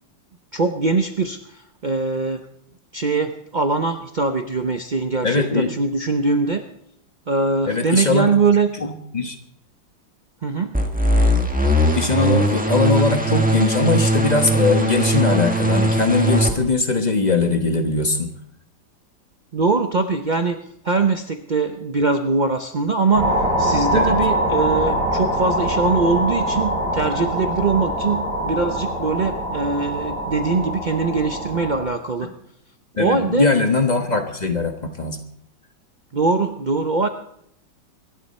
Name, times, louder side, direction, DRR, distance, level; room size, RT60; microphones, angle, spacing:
voice 1, 0.5-2.4 2.9-6.6 7.3-8.7 10.4-10.8 19.5-20.6 20.8-23.3 23.6-32.3 33.0-33.5 36.1-37.1, right 4 dB, 80° right, 7 dB, 0.4 m, -22 dB
voice 2, 5.2-5.7 7.6-8.3 8.8-9.3 11.9-18.3 23.9-24.3 33.0-35.2, left 3 dB, 25° left, 6 dB, 1.1 m, -20 dB
sound 1, 10.7-16.5, right 1 dB, 5° right, 1.3 m, -19 dB
sound 2, 23.1-31.8, equal, 65° left, 7.8 m, -23 dB
24.5 x 11.0 x 4.2 m, 0.73 s
omnidirectional pair, 2.0 m